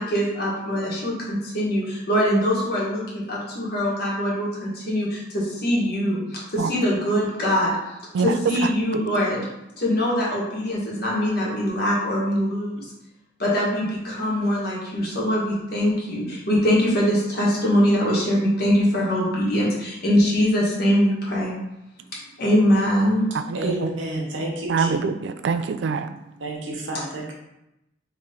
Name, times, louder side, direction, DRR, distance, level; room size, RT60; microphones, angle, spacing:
voice 1, 0.0-7.8 8.2-9.5 9.8-12.9 13.4-21.5 22.4-23.2, equal, 55° left, -5 dB, 1.4 m, -22 dB
voice 2, 23.5-25.0 26.4-27.3, right 1 dB, 85° right, -1 dB, 1.1 m, -29 dB
voice 3, 24.7-26.1, right 5 dB, 65° right, 10 dB, 0.3 m, -24 dB
4.2 x 3.2 x 3.6 m, 0.90 s
head